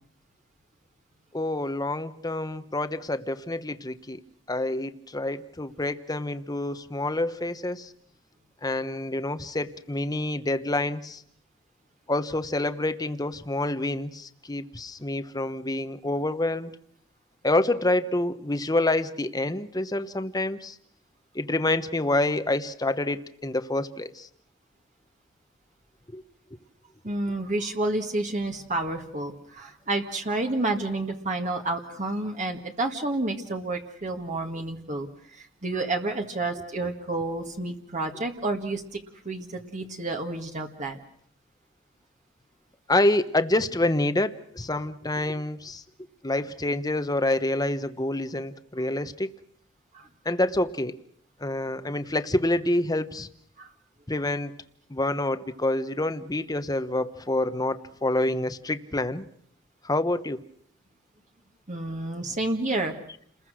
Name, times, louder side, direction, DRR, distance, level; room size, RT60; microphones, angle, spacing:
voice 1, 1.3-4.2 4.5-7.9 8.6-11.2 12.1-16.7 17.4-20.8 21.3-24.3 26.1-26.2 42.9-45.8 46.2-49.3 50.2-51.0 51.4-53.3 54.1-54.5 54.9-59.3 59.8-60.4, left 2 dB, 20° left, 11 dB, 1.1 m, -27 dB
voice 2, 27.0-35.1 35.3-39.0 39.3-41.0 49.9-50.1 53.6-53.7 61.7-62.9, right 2 dB, 35° right, 4 dB, 1.9 m, -30 dB
29.5 x 21.0 x 6.4 m, 0.66 s
head